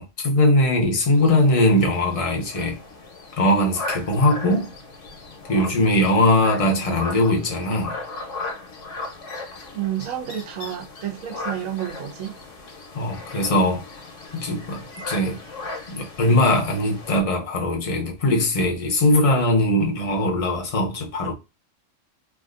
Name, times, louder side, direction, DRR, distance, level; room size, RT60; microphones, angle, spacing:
voice 1, 0.0-2.8 3.4-4.7 5.5-8.0 12.9-13.8 14.3-15.4 15.9-21.3, left 1 dB, 35° left, 0.6 m, -20 dB
sound 1, 1.1-17.2, left 2 dB, 70° left, 1.2 m, -37 dB
voice 2, 9.7-12.4, right 11 dB, 85° right, 1.1 m, -30 dB
3.4 x 2.4 x 2.4 m
omnidirectional pair, 1.4 m